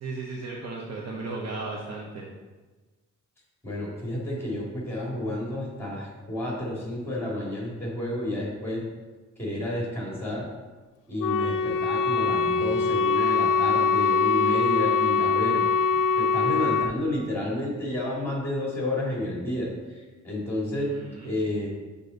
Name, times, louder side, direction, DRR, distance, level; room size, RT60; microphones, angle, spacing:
voice 1, 0.0-2.3 20.7-21.4, right 3 dB, 60° right, -2 dB, 0.9 m, -35 dB
voice 2, 3.6-8.8 9.4-10.5 11.1-20.9 21.2-21.7, left 1 dB, 5° left, -4 dB, 2.3 m, -31 dB
Wind instrument woodwind instrument, 11.2-17.0, left 5 dB, 85° left, 0.5 m, -23 dB
6.8 x 5.4 x 4.0 m, 1.3 s
wide cardioid pair, 155°, 30 cm